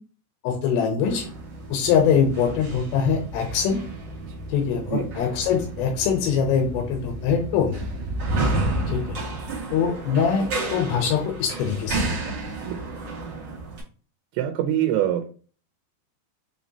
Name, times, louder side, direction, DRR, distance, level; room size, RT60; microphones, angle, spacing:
voice 1, 0.4-1.3 1.7-3.8 4.5-7.8 8.9-9.0 9.7-12.4, left 7 dB, 85° left, 2 dB, 3.1 m, -23 dB
sound 1, 1.0-13.8, right 2 dB, 65° right, 1.1 m, -31 dB
voice 2, 14.3-15.3, right 11 dB, 90° right, 5 dB, 2.8 m, -24 dB
6.4 x 3.0 x 2.7 m, 0.40 s
omnidirectional pair, 4.9 m